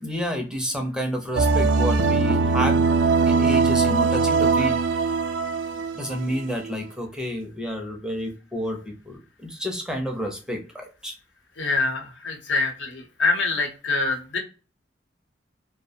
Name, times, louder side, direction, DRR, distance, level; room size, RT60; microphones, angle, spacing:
voice 1, 0.0-2.9 3.3-4.8 5.9-11.2, equal, 5° right, 3 dB, 0.5 m, -30 dB
sound 1, 1.4-6.8, right 4 dB, 75° right, 0.3 m, -21 dB
voice 2, 11.6-14.4, left 3 dB, 80° left, 2 dB, 0.8 m, -25 dB
2.5 x 2.0 x 2.6 m, 0.35 s
head